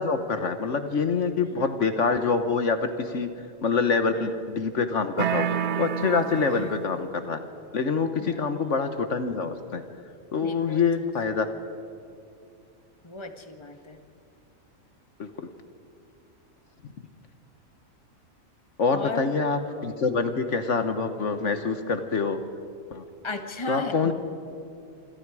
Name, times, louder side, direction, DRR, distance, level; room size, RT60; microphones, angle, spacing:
voice 1, 0.0-3.3 3.6-5.5 5.8-7.4 7.7-9.8 10.3-11.5 15.2-15.3 16.8-16.9 18.8-22.4 22.9-23.0 23.7-24.1, left 5 dB, 60° left, 8 dB, 1.4 m, -25 dB
sound 1, 5.2-7.1, right 8 dB, 60° right, 0.9 m, -29 dB
voice 2, 6.5-6.8 8.2-8.5 10.4-11.1 13.0-14.0 18.9-19.5 23.2-24.1, left 3 dB, 20° left, 6 dB, 1.5 m, -36 dB
27.0 x 25.5 x 4.8 m, 2.6 s
omnidirectional pair, 1.4 m